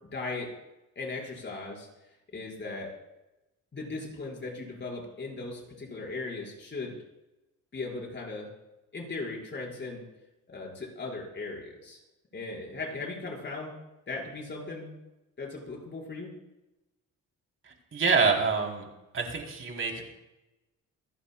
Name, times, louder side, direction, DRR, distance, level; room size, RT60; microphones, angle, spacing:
voice 1, 0.1-0.5 1.0-1.9 2.3-2.9 3.7-7.0 7.7-8.5 8.9-10.0 10.5-12.0 12.3-13.7 14.1-14.9 15.4-16.3, left 3 dB, 35° left, -2 dB, 5.5 m, -37 dB
voice 2, 17.6-18.8 19.1-20.0, right 4 dB, 45° right, 1 dB, 3.8 m, -26 dB
27.0 x 11.5 x 2.4 m, 0.96 s
cardioid pair, 90°, 30 cm